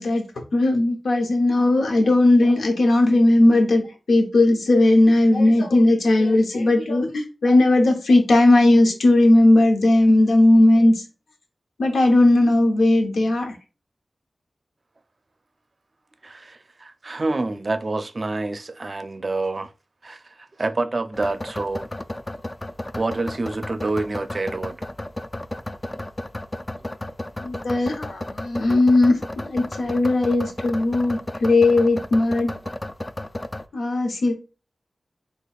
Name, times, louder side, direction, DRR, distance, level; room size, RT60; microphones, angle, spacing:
voice 1, 0.0-11.0 11.8-13.6 27.4-32.5 33.7-34.3, left 2 dB, 90° left, 0.7 m, -17 dB
voice 2, 16.2-19.7 20.0-21.9 22.9-24.8, right 2 dB, 50° right, 0.4 m, -27 dB
sound 1, 21.1-33.6, left 1 dB, 30° left, 0.3 m, -33 dB
4.1 x 2.9 x 2.3 m
cardioid pair, 45°, 0 cm